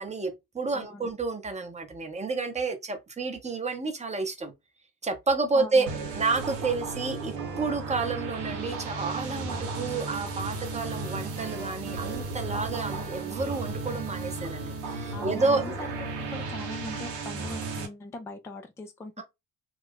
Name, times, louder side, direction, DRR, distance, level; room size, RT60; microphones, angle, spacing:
voice 1, 0.0-4.5 5.0-5.9 6.2-15.9 19.2-19.3, right 3 dB, 15° right, 0.8 m, -30 dB
voice 2, 5.5-5.9 15.1-15.9 16.2-19.2, left 2 dB, 5° left, 0.4 m, -40 dB
sound 1, 5.9-17.9, right 3 dB, 75° right, 0.8 m, -34 dB
2.5 x 2.1 x 3.5 m
hypercardioid pair, 50°, 45 cm